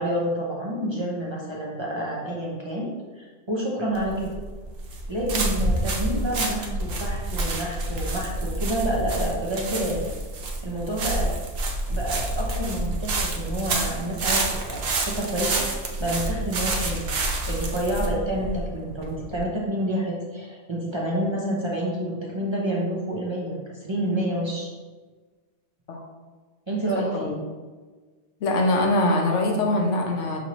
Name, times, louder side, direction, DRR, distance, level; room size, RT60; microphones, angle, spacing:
voice 1, 0.0-2.9 3.2-4.4 5.1-10.1 10.6-11.3 11.9-17.1 17.5-24.7 26.7-27.3, right 1 dB, 30° right, -4 dB, 0.5 m, -28 dB
sound 1, 4.0-19.5, right 2 dB, 60° right, 0.9 m, -28 dB
voice 2, 27.0-27.4 28.4-30.4, left 1 dB, 90° left, 1 dB, 1.1 m, -23 dB
5.9 x 3.0 x 2.9 m, 1.4 s
omnidirectional pair, 1.2 m